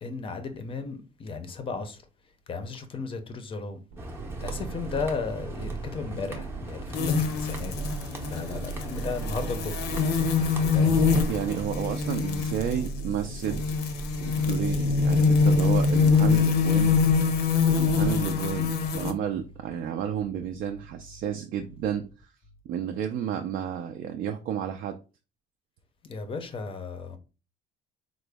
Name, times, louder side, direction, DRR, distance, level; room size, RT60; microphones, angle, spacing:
voice 1, 0.0-2.0 2.5-3.8 4.4-7.7 8.2-9.9 10.7-11.0 26.0-27.2, left 4 dB, 30° left, 0.5 m, -35 dB
sound 1, 3.9-16.4, right 5 dB, 90° right, 0.7 m, -39 dB
sound 2, 4.0-11.7, right 2 dB, 15° right, 0.6 m, -40 dB
sound 3, 6.9-19.1, left 5 dB, 75° left, 0.6 m, -24 dB
voice 2, 11.1-13.6 14.3-17.0 17.7-22.3 22.7-25.0, right 9 dB, 60° right, 0.4 m, -31 dB
3.7 x 2.0 x 3.3 m
cardioid pair, 145°, 17 cm